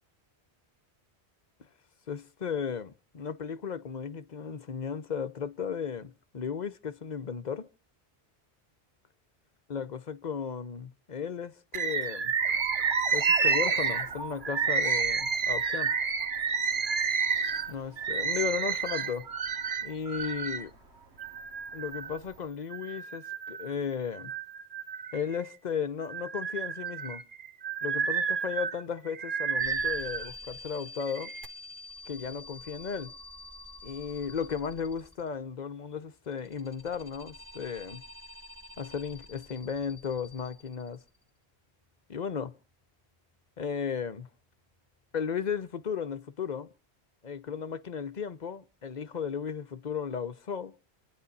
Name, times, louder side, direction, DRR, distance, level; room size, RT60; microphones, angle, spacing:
voice 1, 2.1-7.7 9.7-12.3 13.1-16.0 17.7-19.3 19.8-20.7 21.7-24.3 25.1-27.2 27.8-31.3 32.1-33.1 33.8-38.0 38.8-41.0 42.1-42.5 43.6-44.3 45.1-46.7 47.2-50.7, left 6 dB, 45° left, 0.9 m, -35 dB
Bird, 11.7-20.6 21.2-22.2 22.7-23.7 24.1-25.5 26.0-30.3 31.0-31.5, right 6 dB, 50° right, 1.1 m, -30 dB
Alarm, 12.4-22.5, right 6 dB, 80° right, 2.8 m, -44 dB
sound 1, 29.6-35.4 36.2-41.2, left 2 dB, 10° right, 3.1 m, -47 dB
27.5 x 9.6 x 4.1 m
omnidirectional pair, 1.1 m